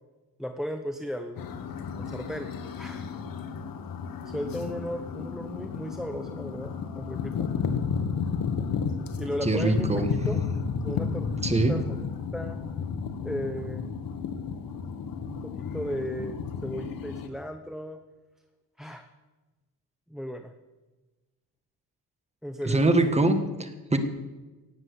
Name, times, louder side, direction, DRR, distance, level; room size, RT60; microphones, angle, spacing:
voice 1, 0.4-1.5 2.0-2.5 2.8-3.1 4.2-7.5 9.2-10.4 10.8-12.0 12.3-12.6 13.2-13.9 15.3-18.0 18.8-19.1 20.1-20.5 22.4-23.1, equal, ahead, 7 dB, 0.8 m, -35 dB
sound 1, 1.4-17.3, left 6 dB, 65° left, 1.5 m, -32 dB
voice 2, 9.4-10.1 11.4-11.8 22.6-24.0, right 2 dB, 15° right, 7 dB, 1.6 m, -23 dB
18.5 x 7.5 x 8.2 m, 1.2 s
cardioid pair, 120°, 37 cm